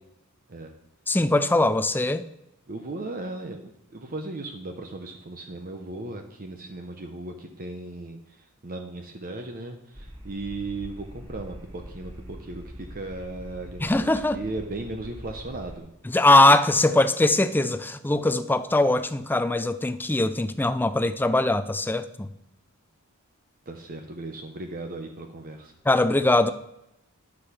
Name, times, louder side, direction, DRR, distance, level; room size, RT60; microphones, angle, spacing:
voice 1, 1.1-2.3 13.8-14.4 16.1-22.3 25.9-26.5, left 2 dB, 10° left, 0.4 m, -21 dB
voice 2, 2.7-8.2 8.6-15.9 23.7-25.7, right 2 dB, 40° right, 0.8 m, -36 dB
sound 1, 9.9-15.8, equal, 20° right, 2.6 m, -43 dB
9.8 x 6.1 x 6.2 m
head